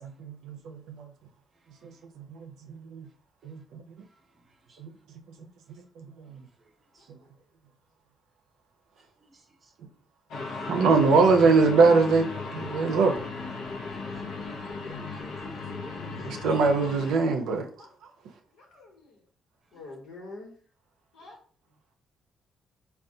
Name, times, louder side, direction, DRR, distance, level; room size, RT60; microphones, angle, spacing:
voice 1, 0.0-1.1 1.8-3.1 3.4-3.6 4.8-4.9 6.0-6.4 10.7-13.2 16.1-17.7, right 4 dB, 85° right, 0.5 m, -23 dB
sound 1, 10.3-17.1, left 3 dB, 75° left, 0.7 m, -36 dB
voice 2, 13.9-14.7 15.0-15.2 15.5-15.8 16.2-16.5, right 2 dB, 35° right, 0.7 m, -60 dB
voice 3, 18.5-19.2 19.7-20.5 21.1-21.4, left 2 dB, 90° left, 1.1 m, -45 dB
3.6 x 2.3 x 2.6 m
cardioid pair, 90°, 0 cm